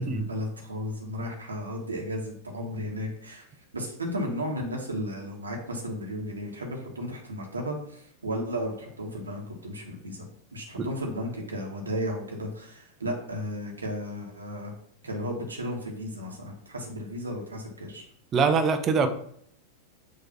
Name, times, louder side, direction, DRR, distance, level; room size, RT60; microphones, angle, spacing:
voice 1, 0.0-3.5 3.7-10.2 10.5-14.7 15.0-18.0, equal, 75° right, 0 dB, 1.4 m, -34 dB
voice 2, 18.3-19.1, right 5 dB, 25° right, 8 dB, 0.7 m, -23 dB
6.5 x 3.1 x 5.8 m, 0.67 s
figure-of-eight pair, 90°, 0 cm